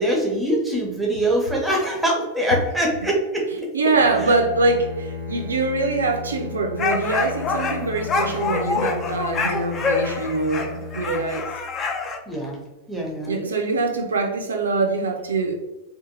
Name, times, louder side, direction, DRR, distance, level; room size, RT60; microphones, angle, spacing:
voice 1, 0.0-3.4 4.2-4.3 12.3-13.4, equal, 5° right, -1 dB, 0.7 m, -23 dB
voice 2, 3.7-11.5 13.3-15.6, right 3 dB, 70° right, 3 dB, 0.4 m, -23 dB
Bowed string instrument, 3.9-11.9, left 4 dB, 60° left, 1.2 m, -35 dB
sound 1, 6.8-12.2, left 4 dB, 30° left, 0.3 m, -26 dB
2.6 x 2.4 x 2.5 m, 1.0 s
figure-of-eight pair, 90°, 0 cm